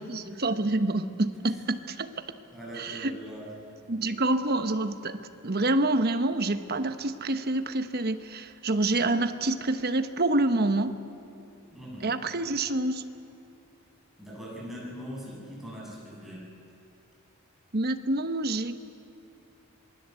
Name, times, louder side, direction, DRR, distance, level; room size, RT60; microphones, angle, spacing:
voice 1, 0.1-2.1 2.8-3.1 3.9-11.0 12.0-13.0 17.7-18.8, right 2 dB, 45° right, 9 dB, 1.1 m, -27 dB
voice 2, 2.5-3.5 11.7-12.2 14.2-16.5, equal, ahead, -6 dB, 7.8 m, -41 dB
26.5 x 20.5 x 8.2 m, 2.8 s
head